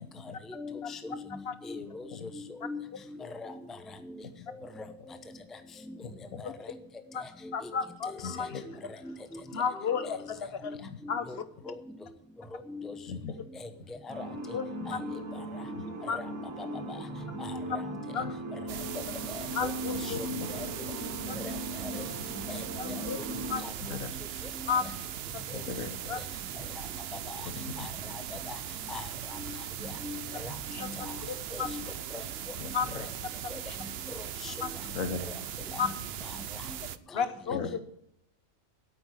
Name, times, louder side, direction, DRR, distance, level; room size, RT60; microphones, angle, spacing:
voice 1, 0.5-2.1 2.6-2.8 3.3-3.5 4.5-4.9 5.9-6.0 6.4-6.5 7.4-7.5 8.1-8.7 9.0-9.4 9.8-9.9 10.6-10.8 11.3-11.4 11.7-11.8 12.7-13.0 14.1-14.4 14.8-15.2 16.0-17.0 17.4-17.8 19.6-19.7 20.0-20.9 21.4-21.5 21.8-22.0 22.4-23.2 23.6-24.0 24.6-24.8 25.5-25.6 27.3-27.9 28.5-28.6 28.9-29.1 29.5-29.6 29.8-30.5 30.8-31.2 31.5-31.8 32.1-32.2 33.5-33.6 34.4-34.5 35.7-35.9 36.7-36.8 37.1-37.2, left 3 dB, ahead, 8 dB, 0.7 m, -41 dB
voice 2, 6.0-6.4 8.2-8.6 10.8-11.0 13.1-13.3 15.7-15.8 20.1-20.5 23.9-24.1 25.5-26.0 27.4-27.5 27.8-27.9 30.7-30.8 32.6-33.1 33.7-33.8 34.9-35.2 37.5-37.7, left 5 dB, 70° left, 10 dB, 1.5 m, -38 dB
voice 3, 7.5-8.6 9.5-10.7 11.1-11.4 14.5-14.6 14.9-15.0 16.1-16.2 18.1-18.3 19.5-20.2 22.8-23.2 23.5-23.6 24.7-24.8 26.1-26.2 30.8-30.9 31.2-31.7 32.7-32.9 34.6-34.7 35.8-35.9 37.1-37.6, left 6 dB, 50° left, 12 dB, 1.1 m, -32 dB
sound 1, 14.1-23.6, right 1 dB, 90° right, 2.0 m, -39 dB
sound 2, 18.7-37.0, right 10 dB, 60° right, 0.7 m, -39 dB
8.8 x 8.6 x 9.4 m, 0.75 s
omnidirectional pair, 1.4 m